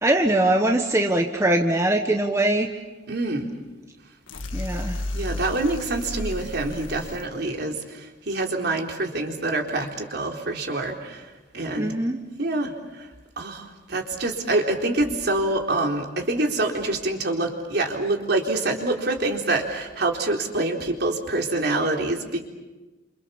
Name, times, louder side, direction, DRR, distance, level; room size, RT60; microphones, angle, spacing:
voice 1, 0.0-2.7 4.5-5.0 11.8-12.2, right 1 dB, 15° right, 3 dB, 1.3 m, -22 dB
voice 2, 3.1-3.5 5.1-7.8 8.3-11.2 11.5-12.0 12.4-12.7 13.4-22.4, right 2 dB, 55° right, 2 dB, 4.0 m, -26 dB
sound 1, 4.3-7.2, left 1 dB, 90° left, 2.1 m, -32 dB
30.0 x 27.0 x 7.1 m, 1.2 s
head